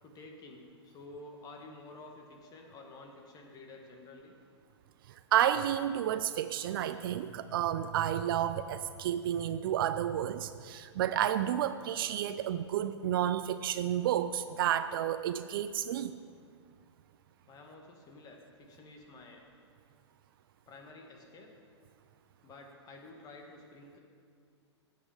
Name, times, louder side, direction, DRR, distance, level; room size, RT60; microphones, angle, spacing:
voice 1, 0.0-4.4 17.5-19.4 20.7-21.5 22.4-24.0, left 2 dB, 25° left, 2 dB, 1.8 m, -51 dB
voice 2, 5.3-16.2, right 11 dB, 50° right, 12 dB, 0.4 m, -31 dB
12.5 x 8.5 x 5.1 m, 2.1 s
figure-of-eight pair, 110°, 15 cm